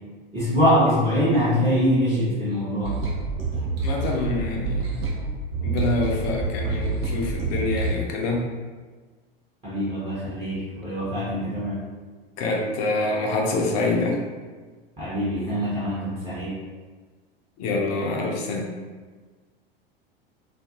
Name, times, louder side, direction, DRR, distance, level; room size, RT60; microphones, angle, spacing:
voice 1, 0.3-3.0 9.6-11.8 15.0-16.6, equal, 15° right, -11 dB, 0.8 m, -23 dB
sound 1, 2.8-8.0, right 3 dB, 70° right, 0.8 m, -27 dB
voice 2, 3.8-4.9 5.6-8.4 12.4-14.2 17.6-18.7, left 2 dB, 40° left, 0 dB, 0.5 m, -26 dB
2.5 x 2.5 x 2.5 m, 1.4 s
figure-of-eight pair, 85°, 30 cm